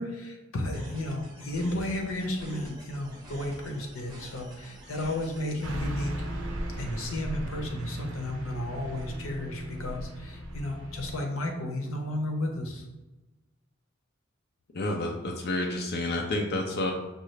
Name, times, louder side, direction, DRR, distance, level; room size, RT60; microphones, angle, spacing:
voice 1, 0.0-6.1 6.8-12.9, left 1 dB, 90° left, 2 dB, 0.7 m, -33 dB
sound 1, 0.7-5.7, right 1 dB, 20° right, 0.9 m, -48 dB
Car passing by / Truck, 5.6-11.2, equal, 65° right, 0.7 m, -37 dB
voice 2, 14.7-16.9, left 2 dB, 55° left, 1 dB, 0.5 m, -29 dB
5.4 x 2.3 x 3.2 m, 1.1 s
head